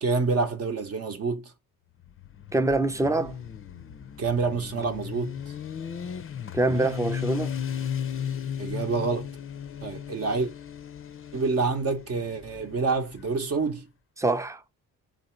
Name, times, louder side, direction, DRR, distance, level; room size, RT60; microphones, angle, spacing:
voice 1, 0.0-1.5 4.2-5.3 8.6-9.3 9.8-10.5 11.3-13.9, right 4 dB, 45° right, 0.8 m, -27 dB
Motorcycle, 2.0-13.7, left 8 dB, 40° left, 0.6 m, -36 dB
voice 2, 2.5-3.4 6.5-7.5 14.2-14.6, right 2 dB, 10° right, 0.5 m, -25 dB
3.7 x 2.7 x 4.2 m
cardioid pair, 85°, 35 cm